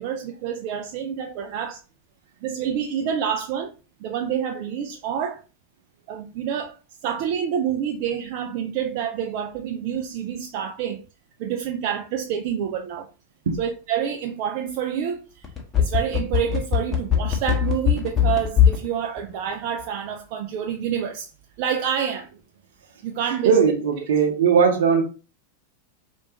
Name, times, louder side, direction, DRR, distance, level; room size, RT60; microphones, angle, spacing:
voice 1, 0.0-1.8 2.4-3.7 4.0-5.4 6.1-6.8 7.0-11.0 11.4-13.1 13.6-15.5 15.8-21.3 21.6-22.3 23.0-23.6, right 8 dB, 55° right, 0.4 m, -27 dB
sound 1, 15.4-18.9 19.2-19.3, left 10 dB, 25° left, 1.1 m, -19 dB
voice 2, 23.4-25.0, right 6 dB, 70° right, 0.9 m, -18 dB
4.7 x 2.5 x 2.9 m
figure-of-eight pair, 90°, 0 cm